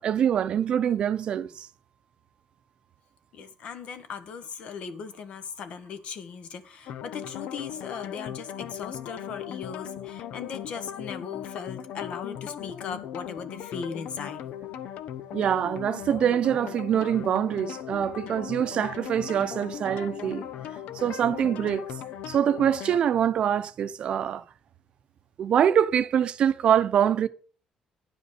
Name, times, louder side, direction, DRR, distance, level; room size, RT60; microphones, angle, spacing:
voice 1, 0.0-1.7 15.3-20.4 20.9-21.8 22.3-24.4 25.4-27.3, right 9 dB, 50° right, 0.7 m, -24 dB
voice 2, 3.3-14.4, left 6 dB, 60° left, 1.3 m, -38 dB
sound 1, 6.9-23.0, left 10 dB, 75° left, 0.8 m, -38 dB
10.0 x 5.1 x 8.0 m
cardioid pair, 150°, 2 cm